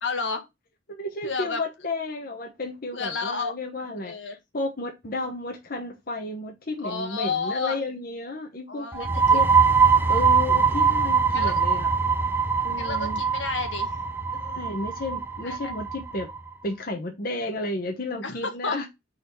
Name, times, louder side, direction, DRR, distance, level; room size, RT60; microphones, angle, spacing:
voice 1, 0.0-0.5 1.2-1.6 2.9-3.5 4.0-4.4 6.8-7.8 8.7-9.0 9.3-9.4 11.3-11.5 12.8-14.0 15.4-15.7 18.2-18.9, left 4 dB, 75° left, 1.4 m, -31 dB
voice 2, 0.9-9.1 9.3-9.5 10.1-11.9 12.6-13.2 14.3-16.3 16.6-18.9, left 2 dB, 50° left, 0.9 m, -32 dB
sound 1, 8.9-16.4, right 5 dB, 10° right, 0.4 m, -22 dB
4.4 x 4.1 x 5.3 m
head